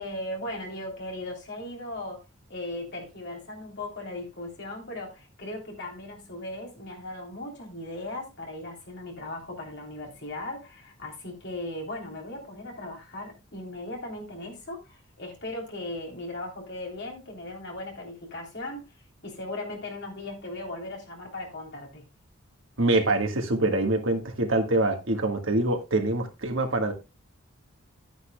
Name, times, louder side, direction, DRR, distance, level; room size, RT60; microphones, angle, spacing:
voice 1, 0.0-18.9 19.2-22.0, left 1 dB, 50° left, 3.3 m, -38 dB
voice 2, 22.8-26.9, right 2 dB, 65° right, 1.7 m, -25 dB
12.0 x 9.5 x 2.2 m
head